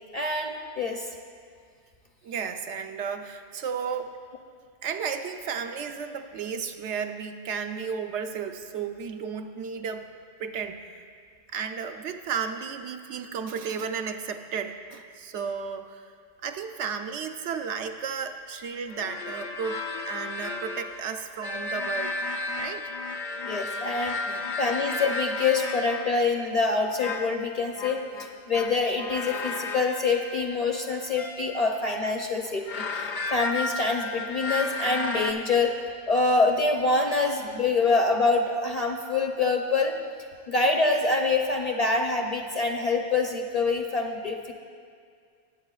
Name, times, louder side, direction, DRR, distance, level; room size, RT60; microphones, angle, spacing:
voice 1, 0.1-1.1 23.4-24.1 24.6-28.0 28.5-35.7 36.1-39.9 40.5-44.5, left 3 dB, 40° left, 2 dB, 0.7 m, -25 dB
voice 2, 2.2-4.1 4.8-10.1 10.4-10.9 11.5-16.1 16.4-22.2 22.6-22.9 24.3-24.5, right 6 dB, 75° right, 6 dB, 0.9 m, -33 dB
sound 1, 18.9-26.2 27.0-27.4 27.8-32.0 32.5-35.3, left 3 dB, 80° left, 0.9 m, -33 dB
18.5 x 8.3 x 2.4 m, 2.1 s
omnidirectional pair, 1.2 m